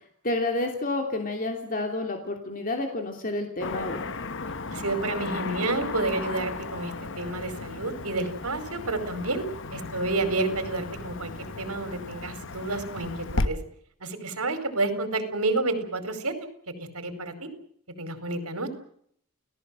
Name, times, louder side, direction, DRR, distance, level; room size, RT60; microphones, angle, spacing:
voice 1, 0.2-4.0, left 2 dB, 40° left, 3 dB, 3.0 m, -29 dB
Car passing by / Traffic noise roadway noise, 3.6-13.5, left 3 dB, 60° left, 1.2 m, -35 dB
voice 2, 4.7-9.4 9.7-13.6 14.0-16.3 16.9-17.5 18.0-18.7, right 2 dB, 85° right, 9 dB, 4.9 m, -30 dB
29.5 x 17.5 x 7.7 m, 0.66 s
head